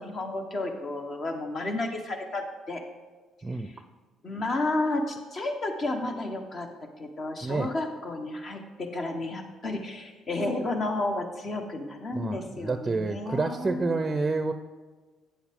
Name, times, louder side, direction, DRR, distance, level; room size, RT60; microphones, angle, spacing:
voice 1, 0.0-2.8 3.6-3.7 4.2-6.7 7.0-14.0, left 2 dB, 45° left, 5 dB, 1.2 m, -32 dB
voice 2, 12.1-14.5, right 3 dB, 25° right, 9 dB, 0.5 m, -28 dB
8.9 x 7.1 x 3.6 m, 1.3 s
supercardioid pair, 75°, 0 cm